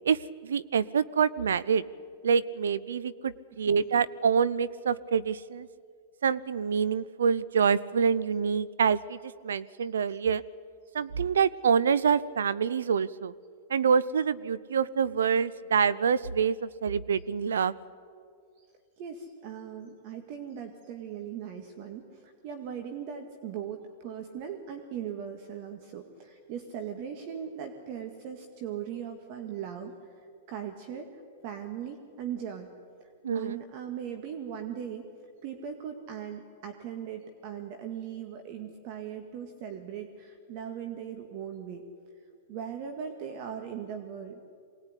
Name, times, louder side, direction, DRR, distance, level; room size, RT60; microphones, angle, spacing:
voice 1, 0.0-1.8 2.2-5.7 6.2-10.4 10.9-13.3 13.7-17.8 33.2-33.6, right 6 dB, 85° right, 20 dB, 0.6 m, -26 dB
voice 2, 19.0-29.9 30.5-32.7 33.0-35.1 35.4-41.8 42.5-44.4, right 8 dB, 50° right, 5 dB, 2.1 m, -39 dB
23.5 x 19.5 x 9.9 m, 2.4 s
hypercardioid pair, 120°, 0 cm